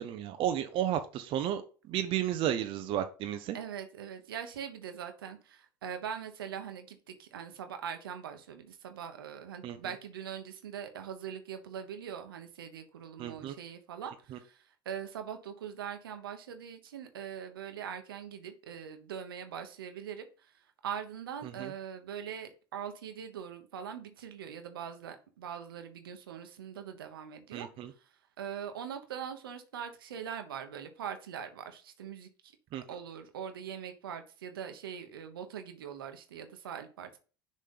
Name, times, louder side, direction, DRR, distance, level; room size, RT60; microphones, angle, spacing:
voice 1, 0.0-1.6 1.9-3.6 9.6-9.8 13.2-13.5 14.3-14.4 21.4-21.7 27.5-27.9 32.7-32.8, right 11 dB, 50° right, 0.7 m, -33 dB
voice 2, 3.5-27.7 28.0-28.1 28.4-32.5 32.9-37.2, right 8 dB, 80° right, 1.0 m, -42 dB
6.6 x 3.3 x 5.4 m
hypercardioid pair, 75°, 12 cm